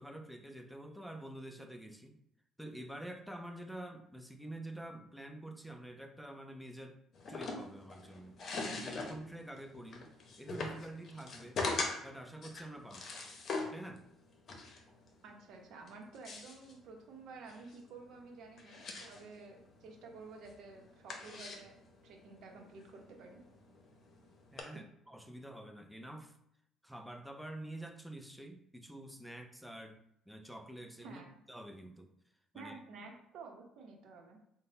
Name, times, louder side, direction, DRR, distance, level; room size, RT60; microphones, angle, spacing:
voice 1, 0.0-2.2 2.6-7.0 7.3-8.4 8.7-10.1 10.4-11.6 12.0-13.1 13.7-14.0 24.5-26.4 26.8-30.0 30.3-31.2 31.5-32.1 32.5-32.8, right 1 dB, ahead, 5 dB, 0.4 m, -47 dB
sound 1, 7.1-24.6, left 3 dB, 45° left, 0.7 m, -43 dB
voice 2, 15.2-21.8 22.0-23.4 24.7-24.8 31.0-31.3 32.5-34.4, right 4 dB, 70° right, 2 dB, 0.9 m, -51 dB
3.7 x 2.2 x 3.9 m, 0.74 s
cardioid pair, 110°, 0 cm